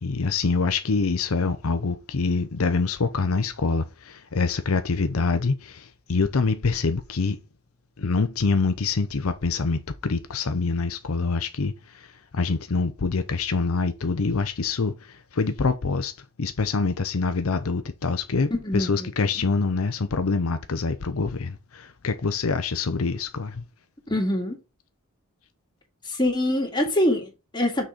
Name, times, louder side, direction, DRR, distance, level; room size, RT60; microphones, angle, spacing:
voice 1, 0.0-7.4 8.0-12.1 12.3-14.9 15.3-16.1 16.4-23.6, left 4 dB, 85° left, 0.7 m, -25 dB
voice 2, 18.5-19.4 24.1-24.6 26.1-27.9, left 1 dB, 20° left, 2.2 m, -25 dB
6.2 x 4.3 x 5.0 m
head